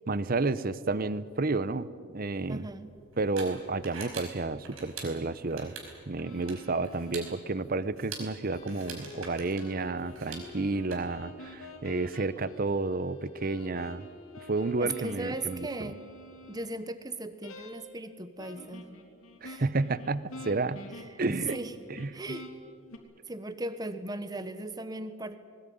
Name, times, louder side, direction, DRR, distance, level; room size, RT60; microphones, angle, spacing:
voice 1, 0.1-2.7 3.2-5.7 6.1-14.1 14.5-15.9 19.4-20.8 21.2-21.5 21.9-22.1, right 3 dB, 45° right, 16 dB, 0.7 m, -31 dB
sound 1, 2.2-10.9, right 5 dB, 90° right, 5.1 m, -46 dB
voice 2, 2.5-2.9 14.8-16.0 16.5-18.9 19.4-19.6 21.0-21.2 21.5-21.7 22.1-22.5 23.3-25.4, right 2 dB, 20° right, 11 dB, 1.1 m, -37 dB
sound 2, 6.2-7.4 8.5-16.7 17.4-18.0 18.4-23.0, left 2 dB, 85° left, 3.3 m, -47 dB
20.5 x 19.5 x 9.4 m, 2.3 s
head